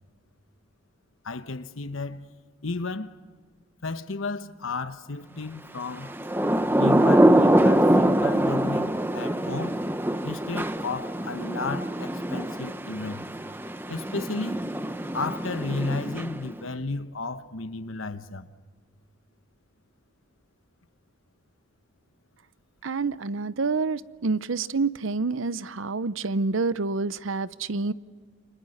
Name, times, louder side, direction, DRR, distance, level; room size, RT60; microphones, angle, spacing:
voice 1, 1.2-2.3 2.6-3.2 3.8-6.2 6.8-9.8 10.2-13.3 13.9-14.6 15.1-18.5, left 3 dB, 85° left, 1.1 m, -33 dB
Thunder / Rain, 6.1-16.6, right 1 dB, 10° right, 0.8 m, -24 dB
voice 2, 22.8-27.9, right 4 dB, 80° right, 0.7 m, -28 dB
29.0 x 26.0 x 6.6 m
head